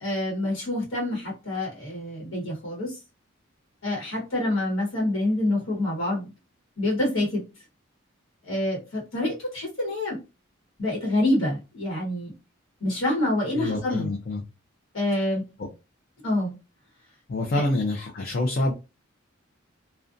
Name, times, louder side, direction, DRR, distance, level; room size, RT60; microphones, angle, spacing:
voice 1, 0.0-3.0 3.8-6.3 6.8-7.4 8.4-10.2 10.8-12.3 12.8-14.2 14.9-15.4 16.2-16.5 17.5-17.6, left 1 dB, 75° left, -3 dB, 1.1 m, -27 dB
voice 2, 13.5-14.4 17.3-18.7, left 2 dB, 45° left, 0 dB, 0.4 m, -26 dB
2.4 x 2.1 x 2.5 m, 0.27 s
head